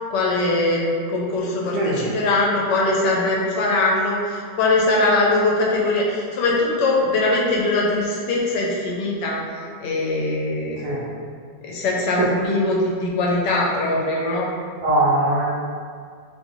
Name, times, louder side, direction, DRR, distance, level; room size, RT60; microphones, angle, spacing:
voice 1, 0.1-0.8 1.1-9.4 9.8-10.9 11.6-14.5, left 2 dB, 80° left, -3 dB, 1.2 m, -21 dB
voice 2, 1.7-2.1 10.8-11.0 12.2-12.3 14.8-15.4, right 1 dB, 70° right, -6 dB, 0.9 m, -20 dB
3.1 x 2.6 x 2.6 m, 2.1 s
omnidirectional pair, 1.9 m